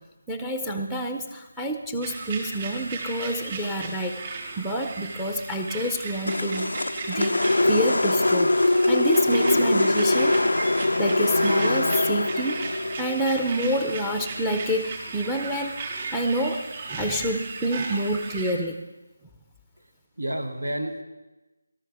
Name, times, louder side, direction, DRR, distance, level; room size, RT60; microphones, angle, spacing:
voice 1, 0.3-6.7 7.0-10.3 11.0-12.7 13.0-16.6 16.9-18.7, right 1 dB, 5° right, 5 dB, 0.6 m, -28 dB
sound 1, 2.0-18.5, right 3 dB, 40° right, 4.1 m, -36 dB
sound 2, 6.3-14.5, left 2 dB, 80° left, 0.3 m, -23 dB
voice 2, 20.2-21.0, right 1 dB, 85° right, 7 dB, 1.4 m, -32 dB
18.5 x 13.0 x 3.6 m, 1.1 s
figure-of-eight pair, 160°, 0 cm